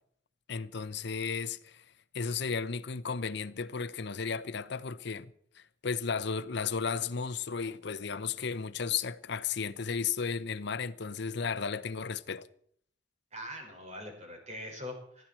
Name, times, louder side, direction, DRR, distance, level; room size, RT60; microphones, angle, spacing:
voice 1, 0.5-1.8 2.1-12.5, left 5 dB, 65° left, 0.7 m, -34 dB
voice 2, 13.3-15.3, left 1 dB, 35° right, 5.6 m, -42 dB
20.5 x 14.5 x 4.5 m
head